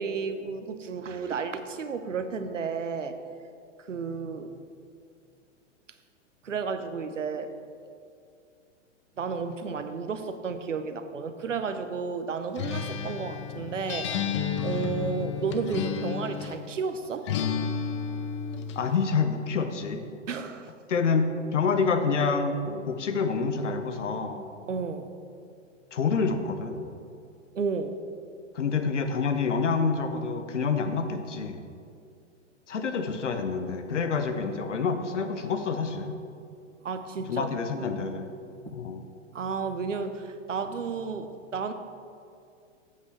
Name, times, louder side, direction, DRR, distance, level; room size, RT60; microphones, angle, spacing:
voice 1, 0.0-3.2 3.8-4.6 6.4-7.5 9.2-17.3 20.3-20.7 24.7-25.1 27.5-28.0 36.8-37.5 37.8-37.9 38.7-38.8 39.3-41.7, right 5 dB, 75° right, 9 dB, 0.8 m, -32 dB
Acoustic guitar, 12.6-16.7 17.3-18.8, left 7 dB, 25° left, 0.4 m, -31 dB
voice 2, 18.8-20.1 20.9-24.4 25.9-26.8 28.5-31.6 32.7-36.2 37.3-38.3 38.7-39.0, left 5 dB, 70° left, 7 dB, 1.0 m, -27 dB
7.8 x 5.9 x 6.1 m, 2.4 s
figure-of-eight pair, 105°, 38 cm